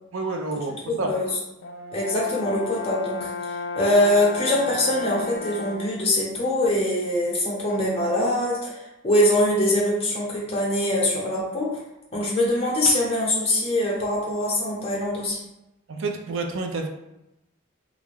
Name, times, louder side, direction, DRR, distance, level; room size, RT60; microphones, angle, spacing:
voice 1, 0.1-1.4 12.1-12.3 15.9-16.9, right 3 dB, 60° right, 4 dB, 0.4 m, -29 dB
voice 2, 0.9-1.3 1.9-11.8 12.1-15.4, left 1 dB, 25° left, -4 dB, 0.7 m, -23 dB
Brass instrument, 1.6-6.0, left 4 dB, 55° left, 0.3 m, -33 dB
2.4 x 2.2 x 3.3 m, 0.92 s
head